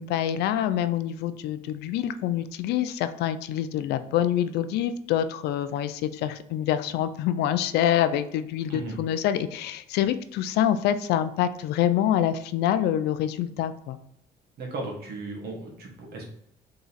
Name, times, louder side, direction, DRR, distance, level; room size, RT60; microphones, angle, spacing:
voice 1, 0.0-14.0, left 10 dB, 75° left, 11 dB, 0.4 m, -26 dB
voice 2, 14.6-16.2, right 2 dB, 65° right, -1 dB, 1.5 m, -36 dB
3.8 x 2.9 x 4.0 m, 0.75 s
cardioid pair, 110°, 17 cm